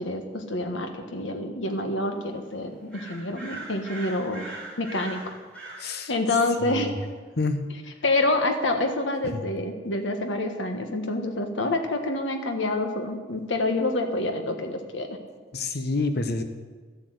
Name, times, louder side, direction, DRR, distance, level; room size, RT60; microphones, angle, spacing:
voice 1, 0.0-4.5 4.8-5.3 6.1-6.9 8.0-15.2, left 2 dB, 90° left, 5 dB, 1.4 m, -27 dB
sound 1, 2.9-5.9, right 2 dB, 5° left, 3.8 m, -40 dB
voice 2, 5.8-6.1 6.6-6.9 7.4-7.6 9.3-9.4 15.5-16.4, left 3 dB, 60° left, 8 dB, 1.1 m, -27 dB
12.5 x 8.0 x 8.0 m, 1.4 s
head